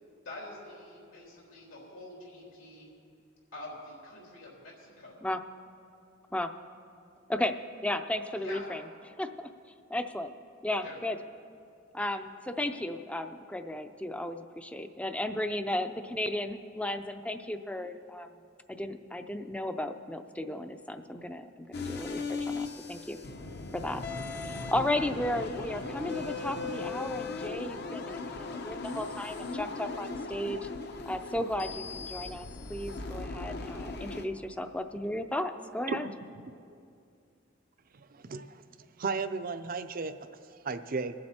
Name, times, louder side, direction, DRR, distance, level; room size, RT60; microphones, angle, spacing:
voice 1, 0.2-2.9 3.5-5.2 8.3-8.6 10.8-11.0, left 2 dB, 85° left, -4 dB, 3.8 m, -46 dB
voice 2, 7.8-8.8 9.2-9.5 9.9-10.3 10.6-11.2 11.9-18.3 18.7-23.2 23.7-24.0 24.4-28.2 28.5-30.7 31.1-36.1, left 1 dB, 5° left, 8 dB, 0.4 m, -34 dB
sound 1, 21.7-34.2, left 3 dB, 55° left, 0.8 m, -38 dB
voice 3, 37.9-38.6 39.0-40.1 40.6-41.1, right 4 dB, 50° right, 11 dB, 0.5 m, -34 dB
23.0 x 7.7 x 4.3 m, 2.5 s
head